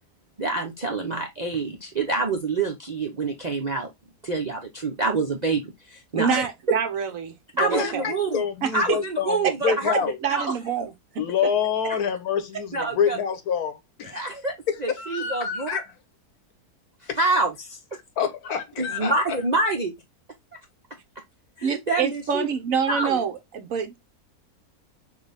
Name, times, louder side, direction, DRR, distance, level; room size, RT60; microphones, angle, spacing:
voice 1, 0.4-3.9 4.2-6.8 7.6-8.4 8.7-9.9 10.3-10.5 12.7-13.2 14.1-14.5 14.8-15.7 17.2-17.8 18.8-19.9 21.6-22.5 22.9-23.2, right 3 dB, 45° right, 0.5 m, -26 dB
voice 2, 6.1-7.3 7.6-8.1 8.6-8.7 10.2-10.9 21.6-24.0, right 7 dB, 65° right, 1.1 m, -26 dB
voice 3, 7.7-10.2 11.2-14.3 14.7-15.9 17.1-17.2 18.2-19.4, left 7 dB, 75° left, 1.4 m, -27 dB
6.4 x 2.3 x 3.3 m
omnidirectional pair, 1.6 m